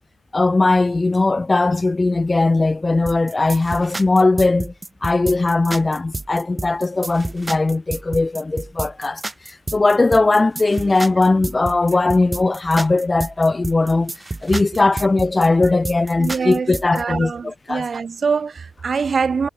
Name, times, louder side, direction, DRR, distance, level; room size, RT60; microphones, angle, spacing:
voice 1, 0.3-4.7 5.0-14.1 14.4-17.9, left 3 dB, 20° left, 0.6 m, -19 dB
sound 1, 3.1-17.0, right 2 dB, 15° right, 3.1 m, -30 dB
voice 2, 16.2-19.5, right 5 dB, 40° right, 3.1 m, -24 dB
cardioid pair, 90°, 0 cm